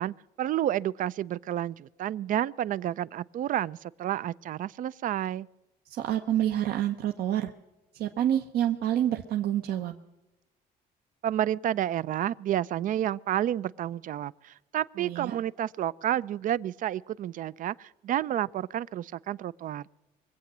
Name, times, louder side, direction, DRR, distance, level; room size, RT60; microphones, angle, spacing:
voice 1, 0.0-5.5 11.2-19.8, right 11 dB, 55° right, 0.4 m, -30 dB
voice 2, 5.9-7.5 7.9-9.9 15.0-15.4, right 11 dB, 70° right, 0.9 m, -28 dB
23.5 x 8.3 x 6.1 m
cardioid pair, 110°, 17 cm